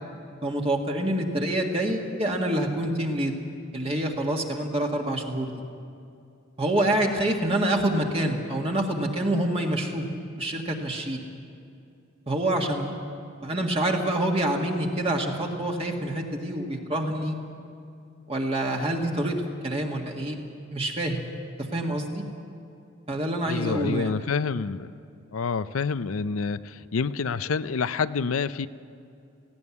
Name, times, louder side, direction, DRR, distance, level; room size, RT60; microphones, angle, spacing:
voice 1, 0.4-3.4 3.7-5.5 6.6-10.1 10.4-11.2 12.3-13.0 13.4-17.4 18.3-19.4 19.6-20.4 20.7-21.2 21.7-22.2 23.1-24.1, right 1 dB, 30° right, 1 dB, 1.8 m, -26 dB
voice 2, 23.5-24.9 25.3-28.7, left 5 dB, 80° left, 14 dB, 0.5 m, -28 dB
18.0 x 16.0 x 9.7 m, 2.5 s
head